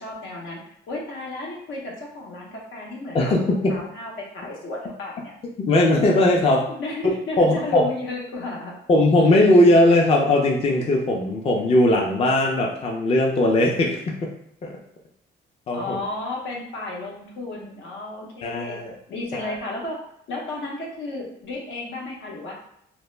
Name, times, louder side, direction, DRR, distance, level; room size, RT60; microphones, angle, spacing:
voice 1, 0.0-5.4 6.8-8.8 15.7-18.8 19.1-20.0 20.3-22.5, left 2 dB, 75° left, -2 dB, 0.7 m, -33 dB
voice 2, 3.1-3.8 5.6-6.7 7.4-7.8 8.9-14.1 14.6-14.8 15.7-16.0 18.4-18.9 19.3-19.6, left 1 dB, 30° left, -1 dB, 0.4 m, -19 dB
2.0 x 2.0 x 3.1 m, 0.75 s
cardioid pair, 90°, 20 cm